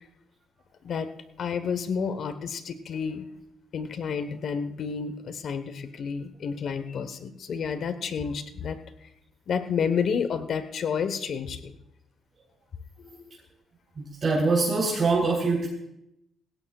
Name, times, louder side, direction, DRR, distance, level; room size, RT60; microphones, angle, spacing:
voice 1, 1.4-3.3 3.7-8.8 9.5-11.7 13.0-13.1, left 6 dB, 60° left, 10 dB, 1.1 m, -30 dB
voice 2, 14.0-15.7, right 3 dB, 45° right, -5 dB, 3.7 m, -24 dB
18.5 x 17.0 x 2.4 m, 0.83 s
cardioid pair, 90°, 0 cm